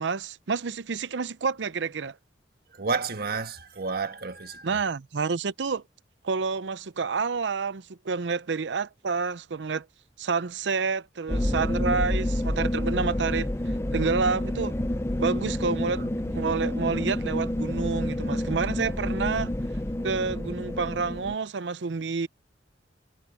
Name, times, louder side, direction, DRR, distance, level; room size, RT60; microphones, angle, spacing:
voice 1, 0.0-2.2 4.6-5.8 6.2-9.9 10.2-13.5 13.9-14.7 15.2-16.0 16.3-19.5 20.0-22.3, right 5 dB, 85° right, 0.6 m, -29 dB
voice 2, 2.7-4.8 16.0-16.3, right 4 dB, 60° right, 1.5 m, -32 dB
sound 1, 11.3-21.4, left 1 dB, 15° left, 0.6 m, -29 dB
head